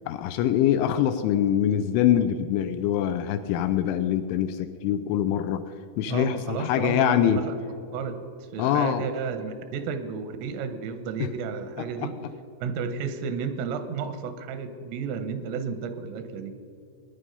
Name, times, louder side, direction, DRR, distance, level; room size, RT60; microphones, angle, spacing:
voice 1, 0.1-5.6 6.0-7.5 8.6-9.1 11.2-11.3 11.8-12.1, left 10 dB, 85° left, 10 dB, 2.8 m, -24 dB
voice 2, 6.1-7.5 7.9-8.2 8.5-12.1 12.6-16.6, right 6 dB, 85° right, 10 dB, 3.5 m, -32 dB
19.0 x 10.5 x 5.3 m, 2.5 s
omnidirectional pair, 5.8 m